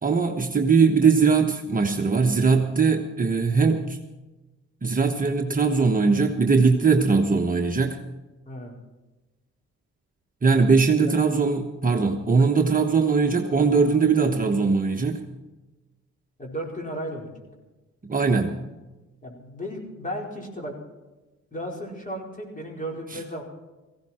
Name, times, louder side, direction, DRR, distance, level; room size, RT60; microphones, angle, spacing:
voice 1, 0.0-4.0 4.8-8.0 10.4-15.2 18.1-18.6 23.1-23.2, right 4 dB, 30° right, 2 dB, 1.3 m, -20 dB
voice 2, 8.5-8.8 11.0-11.2 16.4-17.5 19.2-20.8 21.5-23.4, equal, 25° left, 0 dB, 4.7 m, -34 dB
17.5 x 16.0 x 4.4 m, 1.1 s
cardioid pair, 90°, 30 cm